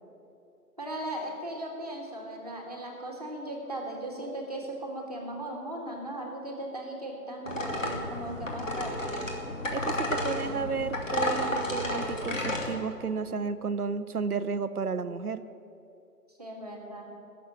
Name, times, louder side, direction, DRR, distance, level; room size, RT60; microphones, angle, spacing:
voice 1, 0.8-9.3 10.2-10.6 16.4-17.1, right 1 dB, 25° right, 0 dB, 1.6 m, -38 dB
sound 1, 7.5-12.7, left 1 dB, 50° left, 2.4 m, -32 dB
voice 2, 9.7-15.4, right 5 dB, 65° right, 13 dB, 0.7 m, -32 dB
17.0 x 7.3 x 8.9 m, 2.8 s
figure-of-eight pair, 180°, 48 cm